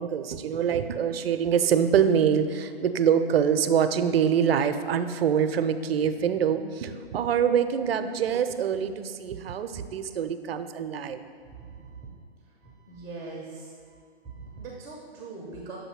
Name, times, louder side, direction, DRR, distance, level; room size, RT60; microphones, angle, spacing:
voice 1, 0.0-11.2, right 8 dB, 70° right, 9 dB, 0.5 m, -25 dB
voice 2, 11.5-12.1 12.6-14.0 14.2-15.8, right 3 dB, 10° right, -3 dB, 0.4 m, -41 dB
7.0 x 2.7 x 5.7 m, 2.1 s
hypercardioid pair, 130°, 31 cm